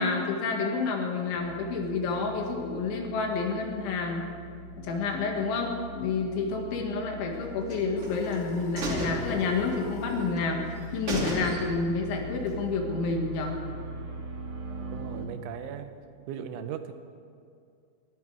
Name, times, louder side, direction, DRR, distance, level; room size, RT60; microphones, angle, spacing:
voice 1, 0.0-4.2 4.8-10.6 10.9-13.5, left 4 dB, 75° left, 2 dB, 4.0 m, -29 dB
sound 1, 1.3-15.2, right 2 dB, 55° right, 1.4 m, -42 dB
sound 2, 7.7-8.4 8.8-10.0 10.4-10.5 10.8-10.9 11.1-12.0 12.3-12.4, right 2 dB, 35° right, 2.9 m, -33 dB
sound 3, 8.0-10.4, left 4 dB, 50° left, 3.0 m, -37 dB
voice 2, 14.9-16.0 16.3-16.9, right 9 dB, 80° right, 9 dB, 3.1 m, -38 dB
23.0 x 13.5 x 4.8 m, 2.3 s
omnidirectional pair, 5.5 m